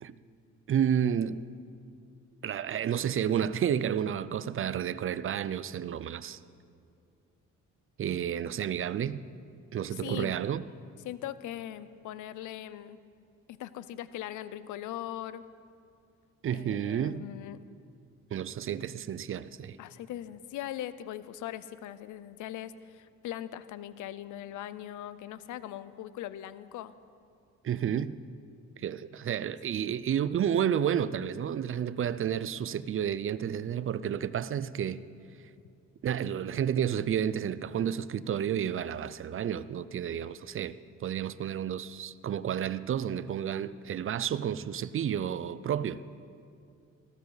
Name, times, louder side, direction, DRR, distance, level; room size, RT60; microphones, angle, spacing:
voice 1, 0.7-1.4 2.4-6.4 8.0-9.2 9.7-10.6 16.4-17.2 18.3-19.8 27.6-28.2 28.8-35.0 36.0-40.8 41.0-46.0, right 9 dB, 45° right, 0.5 m, -31 dB
voice 2, 9.9-10.3 11.0-13.0 13.5-15.4 16.5-17.6 19.8-26.9, left 12 dB, 80° left, 0.6 m, -40 dB
18.0 x 15.5 x 4.0 m
cardioid pair, 90°, 30 cm